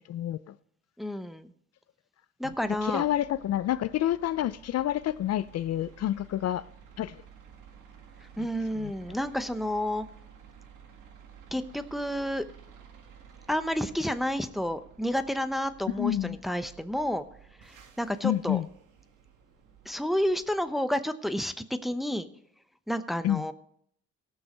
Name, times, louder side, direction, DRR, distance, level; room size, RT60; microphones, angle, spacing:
voice 1, 0.1-0.5 2.8-6.6 7.0-7.1 8.4-8.5 8.8-8.9 16.0-16.4 18.2-18.7 23.2-23.4, left 12 dB, 60° left, 0.5 m, -28 dB
voice 2, 1.0-1.5 2.4-3.1 8.4-10.1 11.5-12.5 13.5-17.3 17.6-18.6 19.9-22.3 22.9-23.5, equal, ahead, 0.7 m, -30 dB
sound 1, 2.4-20.6, right 7 dB, 80° right, 1.6 m, -53 dB
17.0 x 6.3 x 5.1 m
cardioid pair, 90°, 30 cm